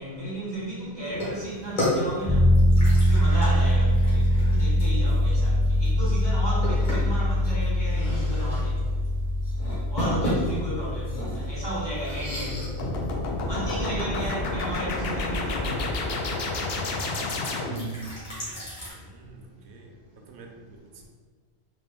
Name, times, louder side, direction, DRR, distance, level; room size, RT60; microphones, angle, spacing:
voice 1, 0.0-2.6 3.1-9.3 9.9-16.1 18.0-18.1 18.4-18.6 19.1-19.2 19.5-19.6 20.1-20.6 20.9-21.0, right 1 dB, 25° left, -8 dB, 1.0 m, -34 dB
sound 1, 1.1-18.9, left 1 dB, 45° left, 1.4 m, -35 dB
sound 2, 2.3-14.1, left 1 dB, 5° right, 0.6 m, -23 dB
sound 3, 12.8-18.0, left 2 dB, 70° left, 0.8 m, -29 dB
voice 2, 18.9-21.1, right 3 dB, 85° right, 2 dB, 0.9 m, -49 dB
3.7 x 2.5 x 3.4 m, 1.5 s
omnidirectional pair, 1.1 m